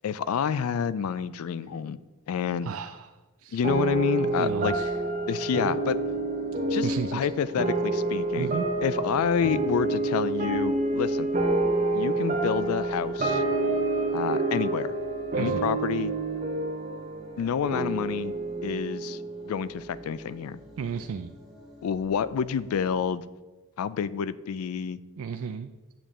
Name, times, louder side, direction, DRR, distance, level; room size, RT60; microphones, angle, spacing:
voice 1, 0.0-2.0 2.3-2.7 3.5-4.7 5.3-6.0 6.7-8.6 8.8-11.3 11.9-13.4 14.1-14.9 15.4-16.1 17.4-18.3 18.6-19.2 19.4-20.6 21.8-23.3 23.8-25.0, left 7 dB, 80° left, 16 dB, 0.3 m, -28 dB
voice 2, 2.6-3.1 3.4-3.6 4.2-4.9 6.7-7.3 8.4-8.7 15.3-15.7 20.8-21.3 25.2-25.7, right 6 dB, 70° right, 6 dB, 0.4 m, -33 dB
sound 1, 3.6-20.4, right 2 dB, 35° right, 0.8 m, -28 dB
sound 2, 4.1-23.0, left 1 dB, ahead, 1.6 m, -51 dB
7.6 x 7.0 x 3.6 m, 1.2 s
head